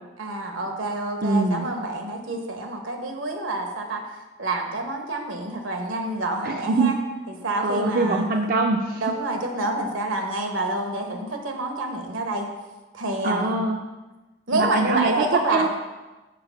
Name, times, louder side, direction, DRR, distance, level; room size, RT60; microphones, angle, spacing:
voice 1, 0.2-4.0 4.4-7.0 7.4-8.3 9.0-12.5 12.9-13.6 14.5-15.7, right 2 dB, 80° right, 3 dB, 1.2 m, -27 dB
voice 2, 1.2-1.7 6.4-6.9 7.6-9.0 13.2-13.8 14.5-15.2 15.5-15.7, right 3 dB, 45° right, 3 dB, 0.4 m, -23 dB
6.8 x 4.8 x 5.6 m, 1.2 s
head